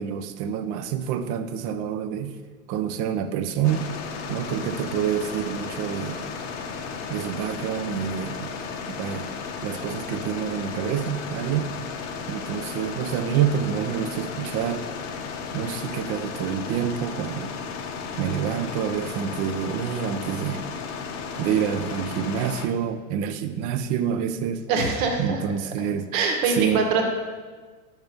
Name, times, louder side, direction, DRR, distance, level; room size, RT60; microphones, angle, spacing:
voice 1, 0.0-2.4 2.7-3.9 4.3-6.2 7.1-8.5 9.0-9.3 9.6-11.7 12.3-14.8 15.5-17.5 18.2-20.6 21.4-24.7 25.2-26.1 26.6-26.8, right 8 dB, 35° right, 10 dB, 0.4 m, -27 dB
sound 1, 3.6-22.7, left 5 dB, 40° left, 0.7 m, -34 dB
voice 2, 24.7-25.4 26.1-27.0, right 4 dB, 60° right, 3 dB, 1.2 m, -23 dB
5.9 x 5.3 x 3.4 m, 1.4 s
hypercardioid pair, 100°, 45 cm